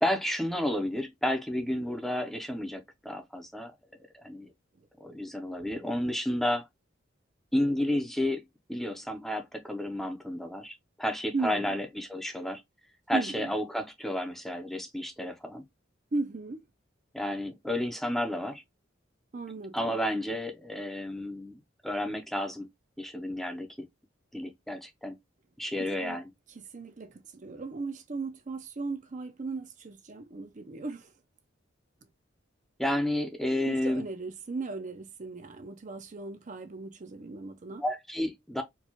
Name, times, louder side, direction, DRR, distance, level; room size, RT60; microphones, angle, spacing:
voice 1, 0.0-3.7 4.2-4.5 5.0-6.7 7.5-8.4 8.7-12.6 13.1-15.6 17.1-18.6 19.7-22.7 23.0-23.9 24.3-25.1 25.6-26.2 32.8-34.0 37.8-38.6, left 1 dB, ahead, 0.6 m, -31 dB
voice 2, 11.3-11.8 13.1-13.5 16.1-16.6 19.3-20.0 25.8-26.2 26.5-31.1 33.6-37.8, right 3 dB, 40° right, 0.6 m, -37 dB
4.4 x 2.3 x 2.9 m
head